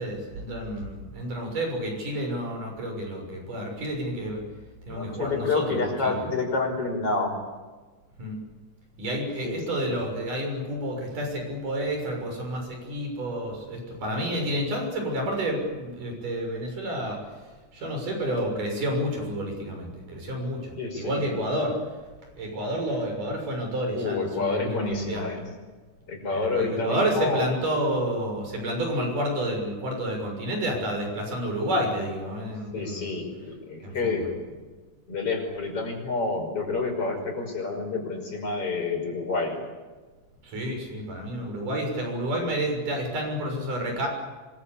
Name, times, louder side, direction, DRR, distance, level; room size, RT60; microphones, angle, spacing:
voice 1, 0.0-4.4 4.9-6.2 8.2-8.4 9.0-17.2 17.7-21.7 22.4-25.2 26.3-33.2 33.8-34.3 40.4-44.1, equal, 85° right, 2 dB, 8.1 m, -30 dB
voice 2, 4.9-7.3 9.4-9.8 20.7-21.2 23.9-25.4 26.1-27.5 32.7-34.2 35.1-39.6, left 3 dB, 45° left, 2 dB, 6.5 m, -29 dB
25.5 x 22.5 x 8.6 m, 1.3 s
omnidirectional pair, 3.6 m